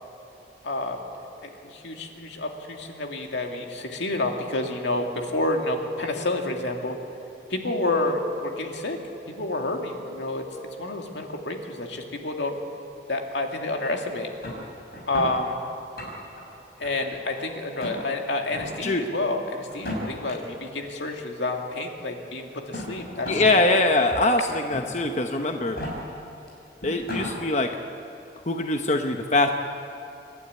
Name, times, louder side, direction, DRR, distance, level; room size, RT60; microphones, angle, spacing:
voice 1, 0.6-1.0 1.4-7.0 7.5-9.0 9.3-10.5 10.8-12.6 13.1-14.3 15.1-15.6 16.8-23.4, left 2 dB, 80° left, 2 dB, 2.3 m, -29 dB
sound 1, 14.4-15.3 15.8-16.4 16.8-17.4 17.8-18.0 18.5-18.7 19.7-20.3 21.4-21.5 22.5-23.5 23.9-24.0 24.7-25.1 25.6-25.9 26.5-26.6 26.8-27.3, left 1 dB, 55° left, 6.0 m, -35 dB
voice 2, 23.3-25.8 26.8-27.8 28.5-29.5, left 2 dB, 40° left, 4 dB, 0.9 m, -23 dB
27.0 x 12.0 x 9.5 m, 2.8 s
head